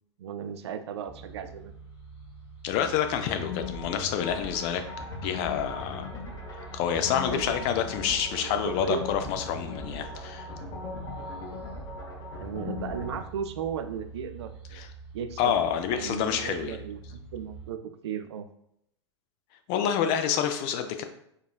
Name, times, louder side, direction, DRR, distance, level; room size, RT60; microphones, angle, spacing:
voice 1, 0.2-1.7 7.3-7.7 8.3-9.2 12.4-14.8 15.1-15.5 15.9-18.5, right 7 dB, 65° right, 8 dB, 0.4 m, -36 dB
sound 1, 1.1-17.7, right 5 dB, 10° right, 0.9 m, -46 dB
voice 2, 2.6-4.8 5.2-6.1 6.7-10.5 14.7-14.9 15.4-16.8 19.7-21.0, left 8 dB, 40° left, 8 dB, 0.4 m, -28 dB
sound 2, 3.2-13.2, left 4 dB, 25° left, 1.1 m, -39 dB
4.7 x 2.3 x 2.3 m, 0.73 s
figure-of-eight pair, 100°, 15 cm